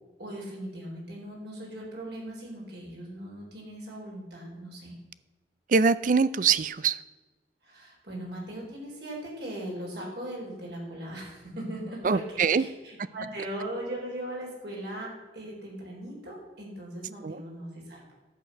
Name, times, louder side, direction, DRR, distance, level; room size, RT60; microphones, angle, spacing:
voice 1, 0.2-5.0 7.6-18.1, right 1 dB, 65° right, -2 dB, 4.0 m, -39 dB
voice 2, 5.7-7.0 12.0-12.7 17.2-17.4, right 5 dB, 45° right, 16 dB, 0.4 m, -23 dB
11.0 x 8.3 x 5.8 m, 1.2 s
head